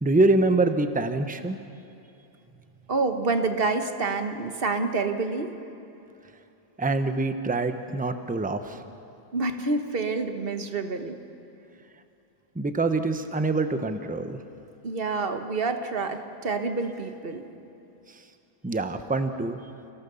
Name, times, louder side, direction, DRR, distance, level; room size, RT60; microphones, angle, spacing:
voice 1, 0.0-1.6 6.8-8.8 12.5-14.4 18.1-18.2 18.6-19.6, right 2 dB, 5° right, 8 dB, 0.8 m, -25 dB
voice 2, 2.9-5.6 9.3-11.2 14.8-17.5, right 3 dB, 40° right, 7 dB, 1.5 m, -28 dB
29.5 x 17.0 x 7.0 m, 2.8 s
omnidirectional pair, 1.5 m